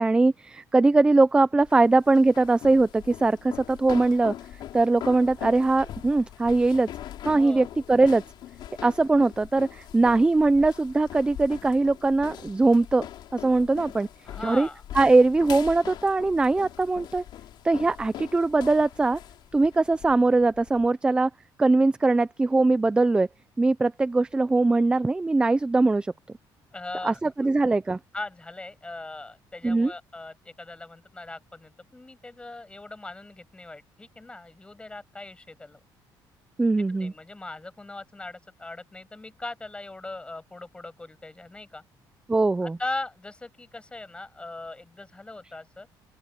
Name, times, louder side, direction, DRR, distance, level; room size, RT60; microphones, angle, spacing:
voice 1, 0.0-4.3 4.7-6.9 7.3-8.2 8.8-13.1 13.3-14.1 14.4-14.7 14.9-17.2 17.6-19.2 19.5-21.3 21.6-23.3 23.6-26.1 27.0-28.0 29.6-29.9 36.6-37.1 42.3-42.8, right 3 dB, 10° right, 0.5 m, -21 dB
sound 1, 1.6-20.9, left 12 dB, 65° left, 3.8 m, -42 dB
voice 2, 7.3-7.7 14.2-14.8 26.7-27.2 28.1-35.8 36.9-41.8 42.6-45.9, left 2 dB, 10° left, 6.6 m, -39 dB
open air
cardioid pair, 140°, 8 cm